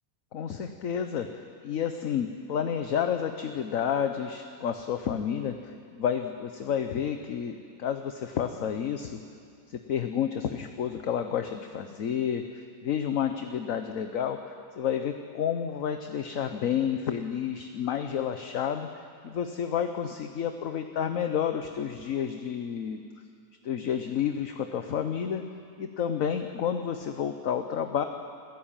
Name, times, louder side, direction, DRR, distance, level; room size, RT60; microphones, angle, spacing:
voice 1, 0.3-9.2 9.7-23.0 23.6-25.4 25.8-28.0, left 8 dB, 55° left, 7 dB, 1.2 m, -30 dB
26.0 x 15.5 x 8.9 m, 2.3 s
omnidirectional pair, 1.9 m